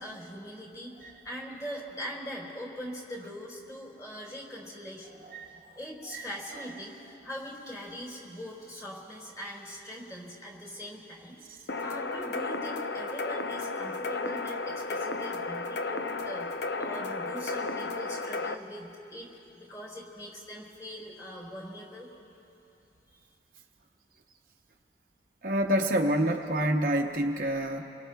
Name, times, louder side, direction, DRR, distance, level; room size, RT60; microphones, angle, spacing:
voice 1, 0.0-5.2 5.8-11.4 11.8-16.5 16.8-19.3 19.5-22.1 23.1-23.3, equal, 20° left, -2 dB, 3.8 m, -42 dB
sound 1, 11.7-18.5, left 3 dB, 65° left, 0.6 m, -33 dB
voice 2, 25.4-27.8, right 1 dB, 50° right, 2 dB, 0.7 m, -27 dB
28.0 x 23.0 x 2.3 m, 2.9 s
head